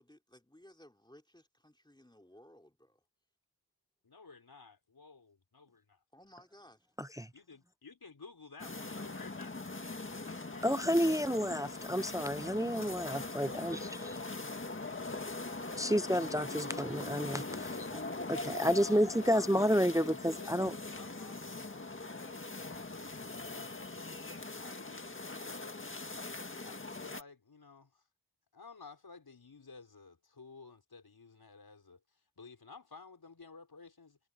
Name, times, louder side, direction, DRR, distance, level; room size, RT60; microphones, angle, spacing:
voice 1, 0.0-3.0 6.1-6.9 12.7-14.3, left 1 dB, 10° left, 3.2 m, -58 dB
voice 2, 4.0-6.0 7.3-10.9 13.5-14.1 14.8-15.3 17.5-17.9 18.6-25.8 26.6-28.1 28.5-34.2, left 4 dB, 60° left, 5.5 m, -54 dB
sound 1, 8.6-27.2, left 2 dB, 30° left, 1.9 m, -41 dB
voice 3, 10.6-13.8 15.8-17.7 18.3-20.7, equal, 10° right, 0.4 m, -30 dB
wide cardioid pair, 80°, 42 cm